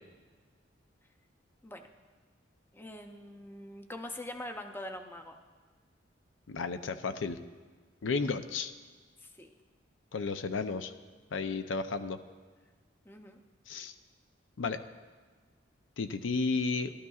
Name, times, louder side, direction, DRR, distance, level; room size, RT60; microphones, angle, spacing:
voice 1, 2.7-5.4 9.2-9.5 13.1-13.4, left 1 dB, 10° left, 5 dB, 0.5 m, -43 dB
voice 2, 6.5-7.4 8.0-8.7 10.1-10.9 11.3-12.2 13.7-13.9 14.6-14.8 16.0-16.9, left 4 dB, 85° left, 10 dB, 0.5 m, -32 dB
15.5 x 12.0 x 2.4 m, 1.5 s
head